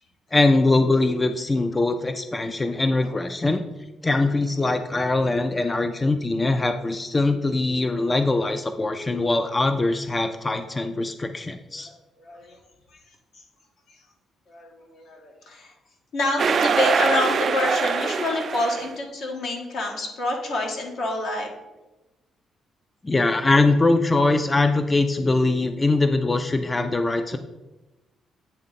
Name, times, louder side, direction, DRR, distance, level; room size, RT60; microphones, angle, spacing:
voice 1, 0.3-3.6 4.0-11.9 23.0-27.4, left 2 dB, 20° left, 8 dB, 0.4 m, -22 dB
voice 2, 12.2-12.6 12.9-13.0 14.5-15.7 16.1-21.5, left 2 dB, 70° left, 0 dB, 1.4 m, -27 dB
sound 1, 16.4-18.9, right 6 dB, 50° right, 0.3 m, -23 dB
8.7 x 3.1 x 4.1 m, 1.0 s
cardioid pair, 90°, 0 cm